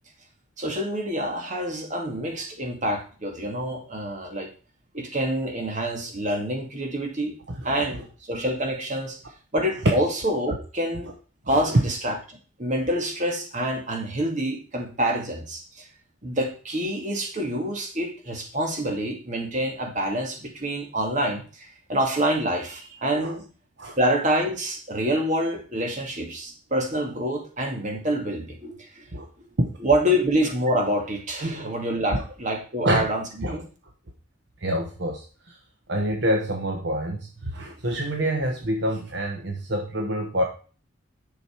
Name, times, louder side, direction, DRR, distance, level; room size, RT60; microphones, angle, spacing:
voice 1, 0.6-4.5 4.9-7.4 7.6-9.2 9.5-11.1 11.5-15.8 16.2-23.4 24.0-29.0 29.8-33.2 33.5-33.6, right 1 dB, 40° right, 2 dB, 2.3 m, -27 dB
voice 2, 11.5-11.8 23.1-23.4 23.8-24.0 29.1-29.3 29.6-29.7 31.4-31.7 32.1-32.2 32.8-33.1 33.4-33.6 34.6-35.6 35.9-40.4, right 1 dB, 60° right, 2 dB, 1.3 m, -26 dB
10.5 x 6.5 x 4.6 m, 0.38 s
head